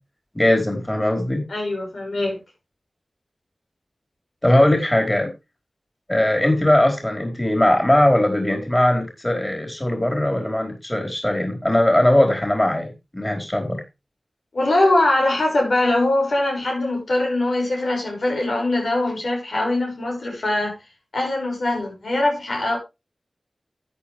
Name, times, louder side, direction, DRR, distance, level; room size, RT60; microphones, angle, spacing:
voice 1, 0.3-1.4 4.4-5.3 6.1-12.9 13.1-13.8, left 1 dB, 20° left, 4.8 m, -19 dB
voice 2, 1.5-2.4 14.5-20.8 21.1-22.8, left 2 dB, 80° left, 6.2 m, -22 dB
13.5 x 9.6 x 3.4 m
wide cardioid pair, 50°, 0 cm